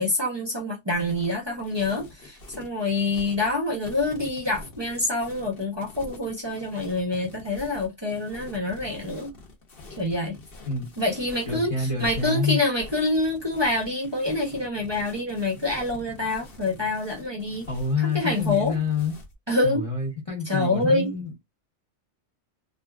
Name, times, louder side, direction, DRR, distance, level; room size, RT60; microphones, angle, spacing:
voice 1, 0.0-9.3 10.0-10.4 11.0-17.7 18.0-18.8 19.5-19.9 20.5-21.1, left 2 dB, 30° right, 0.6 m, -26 dB
sound 1, 0.9-19.3, left 2 dB, 55° left, 1.0 m, -45 dB
voice 2, 11.5-12.6 17.7-19.1 19.6-21.4, left 4 dB, 30° left, 0.8 m, -27 dB
2.8 x 2.5 x 2.2 m
omnidirectional pair, 1.2 m